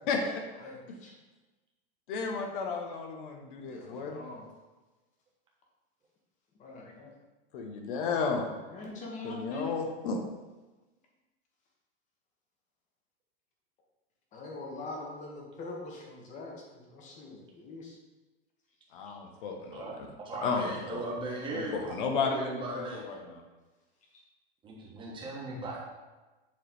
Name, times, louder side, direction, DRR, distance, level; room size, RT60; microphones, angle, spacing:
voice 1, 0.1-0.4 2.1-4.2 7.5-8.4 9.2-10.2 18.9-20.1 20.4-21.0 21.5-23.4, left 4 dB, 60° left, 3 dB, 1.1 m, -33 dB
voice 2, 0.6-1.1 3.7-4.4 6.6-7.1 7.9-9.8 14.3-18.0, left 3 dB, 25° left, -1 dB, 1.4 m, -43 dB
voice 3, 20.2-23.1 24.6-25.8, right 2 dB, 15° right, -3 dB, 1.4 m, -38 dB
7.4 x 3.3 x 4.2 m, 1.2 s
supercardioid pair, 145°, 30 cm